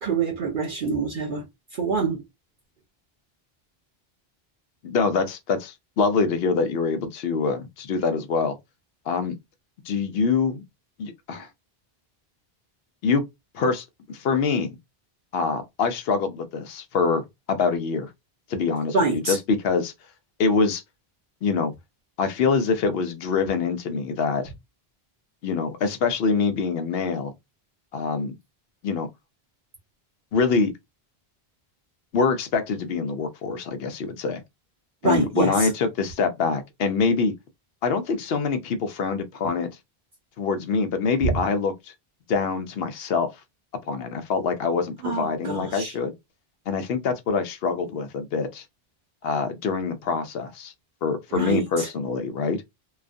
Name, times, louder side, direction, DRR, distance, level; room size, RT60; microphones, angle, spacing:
voice 1, 0.0-1.5 1.7-2.2 18.9-19.4 35.0-35.7 41.3-41.4 45.0-45.9 51.3-51.9, right 4 dB, 60° right, 0.7 m, -25 dB
voice 2, 4.8-8.6 9.1-9.3 9.9-10.6 11.0-11.5 13.0-13.2 13.5-14.8 15.3-17.2 17.5-18.1 18.5-19.9 20.4-20.8 21.4-21.7 22.2-24.5 25.4-27.3 27.9-28.3 28.8-29.1 30.3-30.7 32.1-34.4 35.0-37.3 37.8-39.7 40.4-41.7 42.3-43.3 43.9-46.1 46.7-48.6 49.2-50.7 51.0-52.6, left 5 dB, 75° left, 0.8 m, -25 dB
2.3 x 2.3 x 2.4 m
omnidirectional pair, 1.0 m